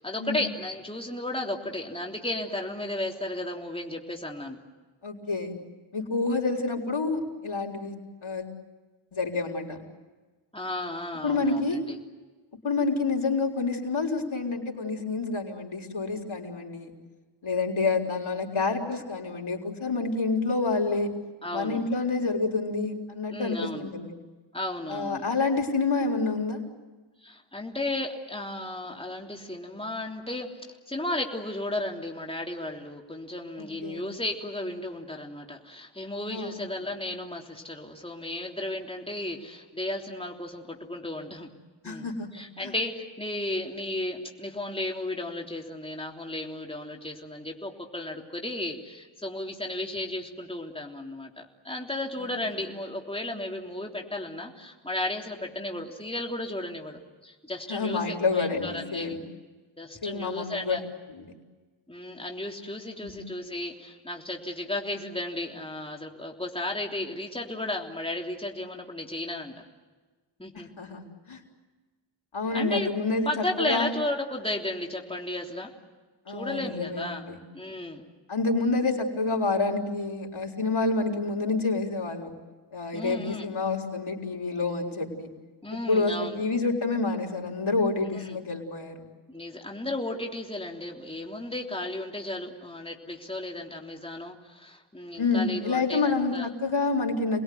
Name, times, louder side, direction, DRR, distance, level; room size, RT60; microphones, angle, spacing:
voice 1, 0.0-4.6 10.5-12.0 21.4-21.8 23.3-23.9 24.5-25.2 27.2-30.6 30.9-41.5 41.8-59.1 59.8-60.8 61.9-69.5 70.4-70.7 72.5-72.9 73.2-75.7 76.3-77.2 77.5-78.0 82.9-83.5 85.6-86.4 88.1-88.2 89.3-96.5, left 1 dB, 10° left, 0 dB, 3.4 m, -34 dB
voice 2, 5.0-5.5 5.9-8.5 9.1-9.8 11.2-11.8 12.6-16.9 17.4-21.1 21.5-24.1 24.9-26.6 33.6-34.0 36.3-36.6 41.8-42.7 52.2-52.3 57.7-59.2 60.0-60.8 61.1-61.4 63.0-63.2 70.5-71.4 72.3-73.3 73.6-73.9 76.3-77.4 78.3-82.3 82.7-85.3 85.7-89.0 95.2-97.4, left 3 dB, 80° left, 0 dB, 4.2 m, -28 dB
29.0 x 21.0 x 9.5 m, 1.3 s
wide cardioid pair, 65°, 47 cm